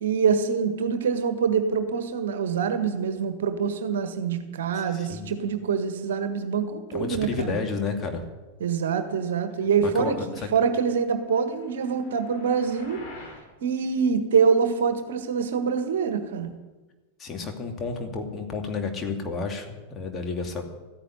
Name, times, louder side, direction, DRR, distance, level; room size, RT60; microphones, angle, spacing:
voice 1, 0.0-7.6 8.6-10.1 10.5-13.0 13.6-16.5, right 6 dB, 60° right, 9 dB, 1.6 m, -25 dB
voice 2, 4.7-5.3 6.9-8.2 9.8-10.5 17.2-20.6, left 4 dB, 25° left, 3 dB, 2.7 m, -31 dB
sound 1, 11.2-13.5, left 2 dB, 40° left, 6.1 m, -47 dB
14.0 x 10.0 x 9.6 m, 1.2 s
figure-of-eight pair, 90°, 0 cm